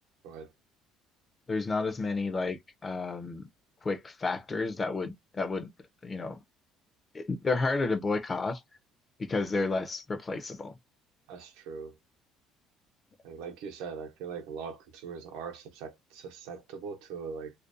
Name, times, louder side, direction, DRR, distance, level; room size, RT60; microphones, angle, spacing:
voice 1, 1.5-3.5 3.8-5.7 6.0-6.4 7.1-8.6 9.2-10.7, left 3 dB, 20° left, 0.4 m, -31 dB
voice 2, 11.3-11.9 13.2-17.5, right 6 dB, 90° right, 0.7 m, -41 dB
2.4 x 2.2 x 2.5 m
cardioid pair, 145°, 0 cm